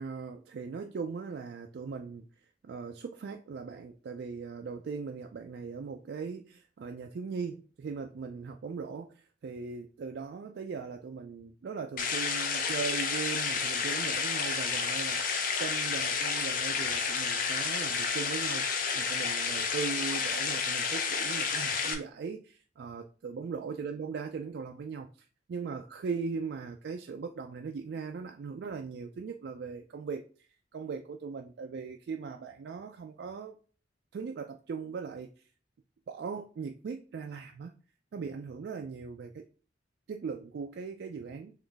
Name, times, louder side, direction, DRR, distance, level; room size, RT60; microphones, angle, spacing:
voice 1, 0.0-2.3 2.6-15.2 15.6-25.1 25.5-33.6 34.1-35.4 36.1-37.7 38.1-39.4 40.1-41.5, right 5 dB, 60° right, 4 dB, 0.3 m, -39 dB
sound 1, 12.0-21.9, left 5 dB, 45° left, 0.5 m, -30 dB
3.8 x 3.1 x 3.4 m, 0.39 s
head